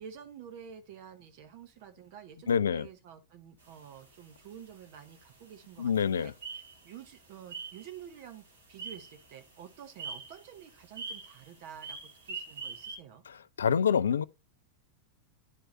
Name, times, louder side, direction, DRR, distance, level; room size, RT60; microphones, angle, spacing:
voice 1, 0.0-6.3 6.8-13.2, right 8 dB, 50° right, 1.3 m, -49 dB
voice 2, 2.5-2.9 5.8-6.3 13.3-14.2, left 7 dB, 70° left, 0.4 m, -27 dB
sound 1, 3.6-13.0, right 4 dB, 70° right, 2.9 m, -46 dB
11.0 x 4.6 x 2.7 m
figure-of-eight pair, 90°, 0 cm